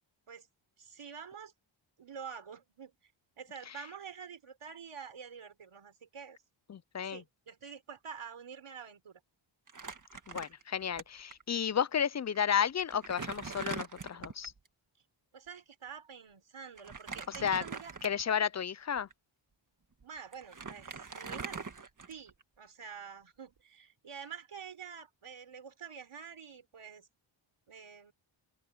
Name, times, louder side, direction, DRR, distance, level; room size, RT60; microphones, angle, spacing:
voice 1, 0.8-1.5 2.0-2.9 3.4-6.4 7.0-9.2 15.3-17.9 20.0-21.6 22.1-27.1 27.7-28.1, right 7 dB, 90° right, 4.8 m, -47 dB
voice 2, 6.7-7.2 10.3-14.5 17.3-17.6 18.0-19.1, left 8 dB, 35° left, 0.4 m, -32 dB
Crumpling crinkling, 9.7-11.0 11.3-11.4 12.3-12.4 12.8-14.6 16.8-18.4 19.0-19.1 20.0-20.1 20.3-22.4, right 4 dB, 40° right, 1.7 m, -42 dB
open air
wide cardioid pair, 130°, 48 cm